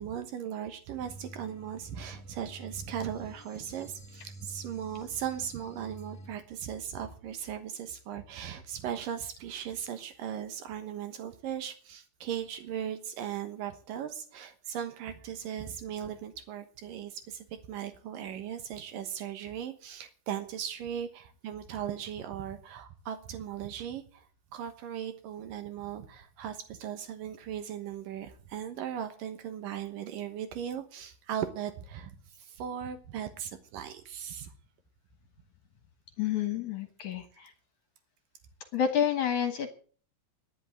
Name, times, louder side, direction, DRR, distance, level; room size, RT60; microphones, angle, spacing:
voice 1, 0.0-24.3 24.5-34.5, right 9 dB, 80° right, 9 dB, 2.9 m, -38 dB
sound 1, 1.0-6.3, right 1 dB, 20° left, 0.4 m, -48 dB
voice 2, 36.2-37.5 38.7-39.7, left 9 dB, 65° left, 8 dB, 2.5 m, -29 dB
11.0 x 10.5 x 9.0 m, 0.43 s
omnidirectional pair, 3.9 m